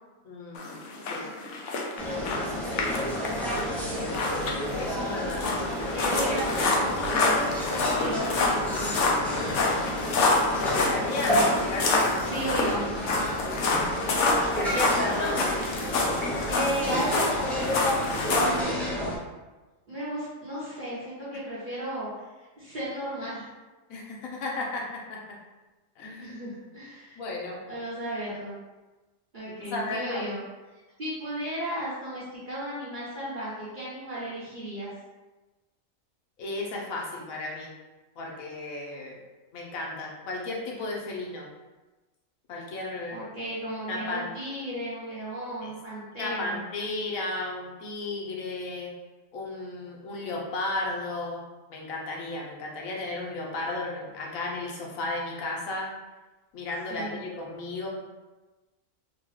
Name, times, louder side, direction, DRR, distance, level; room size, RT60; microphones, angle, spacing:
voice 1, 0.2-0.8 1.1-1.3 2.2-2.9 4.8-5.5 6.0-6.3 10.5-12.5 14.5-15.4 23.9-25.2 26.0-26.4 27.2-27.6 29.7-30.2 36.4-37.7 38.2-39.2 39.5-41.5 42.5-43.2 43.9-44.3 45.6-45.7 46.2-48.9 49.3-51.4 51.7-55.9 56.5-57.9, left 2 dB, 90° left, -2 dB, 1.2 m, -34 dB
sound 1, 0.5-18.6, left 3 dB, 70° left, 0.9 m, -28 dB
sound 2, 2.0-19.2, equal, ahead, 0.3 m, -30 dB
voice 2, 5.9-7.3 7.7-9.0 11.2-11.5 12.3-12.9 16.5-17.0 18.3-19.0 19.9-22.1 22.6-23.5 26.2-27.2 27.7-28.5 29.3-30.4 31.0-34.9 43.1-46.6 56.9-57.2, right 1 dB, 45° right, -10 dB, 0.9 m, -35 dB
3.9 x 2.2 x 3.1 m, 1.2 s
omnidirectional pair, 1.4 m